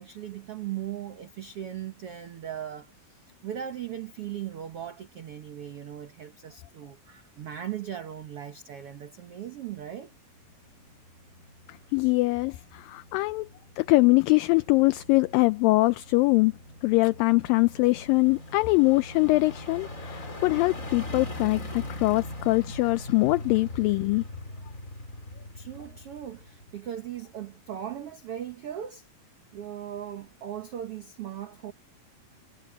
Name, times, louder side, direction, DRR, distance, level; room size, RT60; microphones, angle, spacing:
voice 1, 0.0-10.1 25.5-29.1 29.5-31.7, right 10 dB, 65° right, 1.4 m, -38 dB
sound 1, 10.5-27.1 27.4-27.5, left 1 dB, 20° left, 4.1 m, -41 dB
voice 2, 11.9-13.5 13.8-16.5 16.8-24.2, left 23 dB, 80° left, 2.1 m, -23 dB
omnidirectional pair, 4.3 m